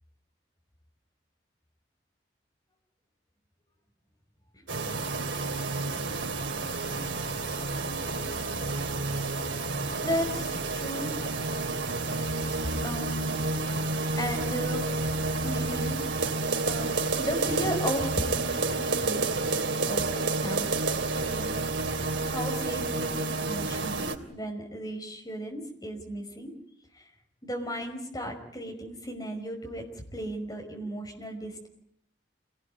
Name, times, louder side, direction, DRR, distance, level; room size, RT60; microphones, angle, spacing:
sound 1, 4.7-24.2, right 3 dB, 85° right, 3.2 m, -30 dB
voice 1, 10.0-11.1 12.8-13.3 13.6-13.7 14.1-15.0 15.4-16.1 16.6-20.7 21.2-21.6 22.3-26.5 26.9-27.0 27.4-29.8 30.1-31.7, equal, 20° left, 3 dB, 5.6 m, -35 dB
28.0 x 19.0 x 9.4 m, 0.69 s
head